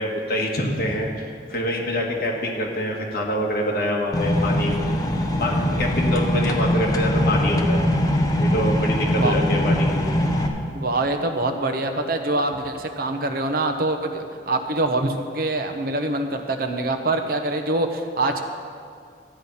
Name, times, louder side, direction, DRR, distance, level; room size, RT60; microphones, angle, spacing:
voice 1, 0.0-4.8 5.4-7.8 8.4-10.1, left 1 dB, 55° left, -1 dB, 1.7 m, -25 dB
sound 1, 4.1-10.5, equal, 20° left, 0.8 m, -22 dB
voice 2, 10.7-18.4, right 2 dB, 55° right, 6 dB, 0.9 m, -24 dB
13.0 x 8.9 x 5.5 m, 2.3 s
head